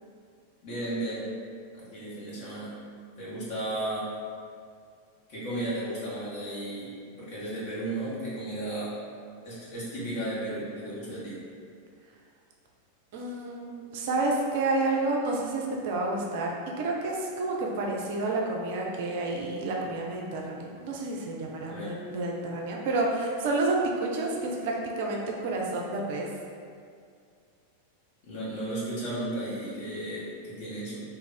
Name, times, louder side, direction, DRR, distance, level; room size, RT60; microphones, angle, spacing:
voice 1, 0.6-1.3 1.7-2.7 3.2-4.1 5.3-6.9 7.2-8.9 9.4-11.4 21.6-21.9 28.2-31.0, right 1 dB, 45° left, -9 dB, 1.3 m, -34 dB
voice 2, 13.1-26.3, right 2 dB, 50° right, -1 dB, 0.4 m, -30 dB
2.6 x 2.4 x 3.9 m, 2.3 s
figure-of-eight pair, 90°, 0 cm